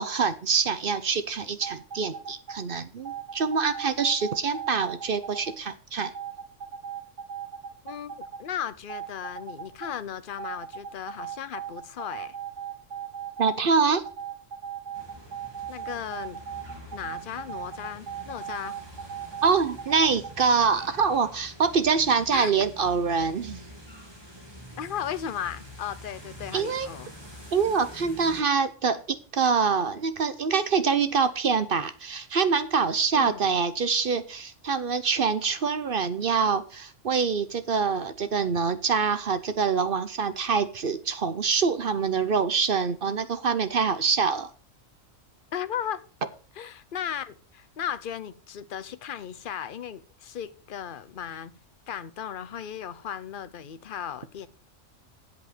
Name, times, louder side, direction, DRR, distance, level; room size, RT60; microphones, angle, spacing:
voice 1, 0.0-6.1 13.4-14.0 19.4-23.6 26.5-26.9 27.5-44.5, right 5 dB, 50° right, 0.9 m, -25 dB
sound 1, 1.6-2.6 3.0-5.5 6.0-8.4 8.7-9.9 10.4-13.6 14.0-20.3 20.8-20.9, right 8 dB, 65° right, 1.6 m, -38 dB
voice 2, 7.8-12.4 15.7-16.4 16.9-18.8 22.3-22.5 24.8-27.1 33.1-33.4 45.5-46.1 46.5-51.6 51.9-54.5, left 9 dB, 50° left, 0.8 m, -36 dB
sound 2, 14.9-28.4, equal, 20° right, 2.7 m, -46 dB
8.1 x 7.9 x 6.6 m
omnidirectional pair, 1.3 m